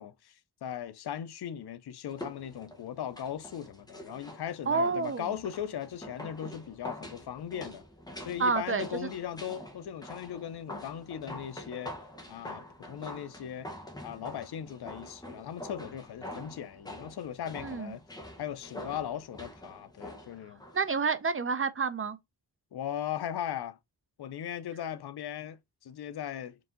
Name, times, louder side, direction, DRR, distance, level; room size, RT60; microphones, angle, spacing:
voice 1, 0.0-7.8 8.2-11.9 12.3-13.7 14.0-18.0 18.4-20.6 22.7-23.8 24.2-26.6, left 9 dB, 75° left, 0.6 m, -38 dB
sound 1, 2.1-20.9 21.2-21.3, left 1 dB, 10° left, 0.9 m, -46 dB
voice 2, 4.7-5.3 8.4-8.9 17.6-17.9 20.7-22.2, right 4 dB, 35° right, 0.5 m, -29 dB
4.7 x 2.6 x 3.7 m
wide cardioid pair, 160°, 39 cm